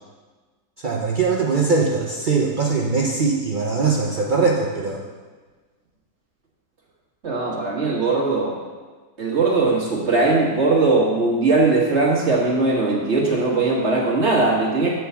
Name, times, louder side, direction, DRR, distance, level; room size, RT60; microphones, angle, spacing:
voice 1, 0.8-5.0, right 4 dB, 75° right, -2 dB, 0.4 m, -21 dB
voice 2, 7.2-8.6 9.2-14.9, right 3 dB, 40° right, -3 dB, 1.6 m, -19 dB
7.8 x 4.6 x 6.8 m, 1.4 s
omnidirectional pair, 1.9 m